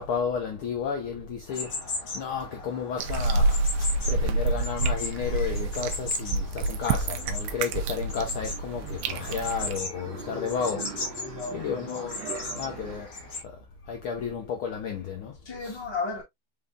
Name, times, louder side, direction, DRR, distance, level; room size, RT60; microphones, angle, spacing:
voice 1, 0.0-11.0 11.5-12.3 12.5-13.2 13.4-15.4 15.6-15.8, left 6 dB, 85° left, 1.1 m, -32 dB
sound 1, 1.5-13.4, left 3 dB, 40° left, 1.0 m, -38 dB
sound 2, 3.0-9.8, right 2 dB, 80° right, 1.9 m, -28 dB
sound 3, 7.1-13.0, right 5 dB, 55° right, 1.3 m, -43 dB
voice 2, 10.3-10.6 11.2-11.9 15.4-16.2, left 4 dB, 15° left, 1.1 m, -34 dB
5.4 x 3.6 x 2.3 m
omnidirectional pair, 3.5 m